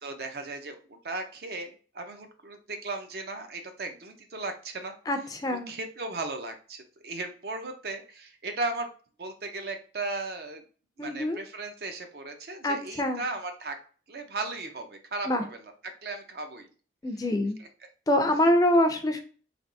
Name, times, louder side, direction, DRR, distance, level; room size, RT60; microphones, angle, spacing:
voice 1, 0.0-5.0 5.5-8.9 9.2-10.6 11.0-13.8 14.1-15.6 15.8-16.7 17.6-17.7, right 2 dB, 60° right, 6 dB, 0.5 m, -36 dB
voice 2, 5.1-5.7 11.0-11.4 12.6-13.2 15.3-15.4 17.0-17.6 18.1-19.2, left 1 dB, 20° left, 7 dB, 0.4 m, -25 dB
3.3 x 2.8 x 2.6 m, 0.40 s
head